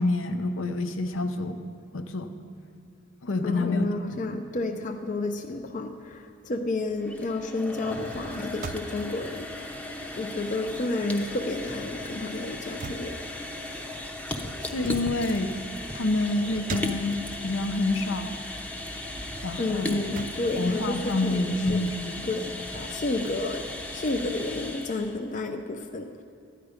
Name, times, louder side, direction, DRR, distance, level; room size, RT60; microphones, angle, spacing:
voice 1, 0.0-1.6 1.9-2.3 3.2-3.9 14.6-15.5 15.9-17.2 17.4-18.4 19.4-20.0 20.6-22.2, left 2 dB, 70° left, 7 dB, 0.7 m, -27 dB
voice 2, 3.4-9.8 10.2-13.2 19.6-20.9 21.2-21.9 22.2-26.2, left 2 dB, 40° left, 5 dB, 0.5 m, -31 dB
sound 1, 7.0-25.2, left 1 dB, 5° left, 0.7 m, -37 dB
sound 2, 7.7-10.4 10.7-17.5 18.0-21.5, right 3 dB, 40° right, 0.5 m, -43 dB
13.0 x 10.0 x 5.0 m, 2.4 s
head